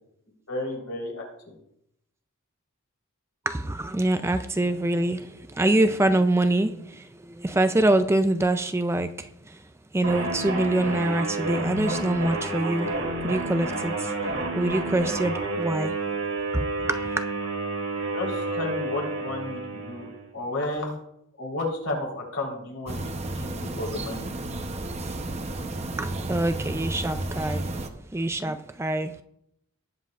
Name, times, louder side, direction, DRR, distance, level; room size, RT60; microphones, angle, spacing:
voice 1, 0.5-1.2 18.1-20.1 20.3-20.9 21.4-24.3, left 2 dB, 70° left, 3.8 m, -32 dB
voice 2, 3.5-9.6 9.9-12.9 13.2-14.2 14.6-15.9 16.5-17.2 26.0-27.7 28.1-29.2, right 1 dB, 10° right, 0.4 m, -25 dB
sound 1, 10.0-20.3, right 2 dB, 85° right, 2.6 m, -30 dB
sound 2, 22.9-27.9, right 2 dB, 30° right, 0.8 m, -32 dB
18.5 x 7.9 x 2.4 m
head